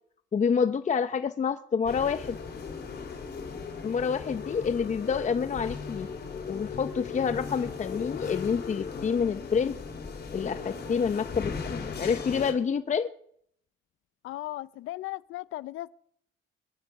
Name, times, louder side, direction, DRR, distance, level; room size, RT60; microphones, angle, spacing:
voice 1, 0.3-2.4 3.8-6.1 6.5-9.8 10.3-13.1, left 6 dB, 35° left, 0.7 m, -28 dB
sound 1, 1.9-12.5, left 5 dB, 55° left, 4.7 m, -37 dB
voice 2, 14.2-16.0, left 16 dB, 85° left, 0.6 m, -37 dB
22.5 x 10.0 x 5.9 m
cardioid pair, 90°, 20 cm